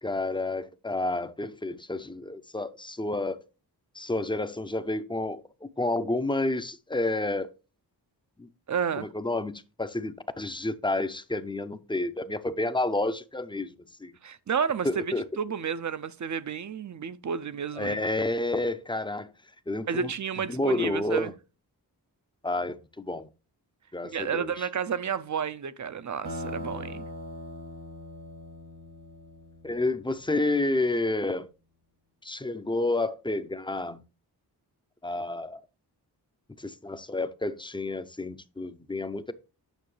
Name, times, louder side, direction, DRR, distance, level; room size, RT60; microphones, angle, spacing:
voice 1, 0.0-3.4 4.0-5.4 5.8-7.5 8.4-8.5 8.9-13.7 14.0-14.1 14.8-15.3 17.8-19.3 19.7-20.1 20.4-21.3 22.4-23.3 23.9-24.7 29.6-31.5 32.2-34.0 35.0-35.6 36.6-39.3, left 2 dB, 10° left, 0.5 m, -30 dB
voice 2, 8.7-9.1 14.2-18.0 19.9-21.3 24.0-27.0, right 7 dB, 50° right, 0.5 m, -31 dB
sound 1, 26.2-30.5, left 1 dB, 80° right, 1.9 m, -40 dB
9.1 x 6.2 x 3.2 m
wide cardioid pair, 110°, 40 cm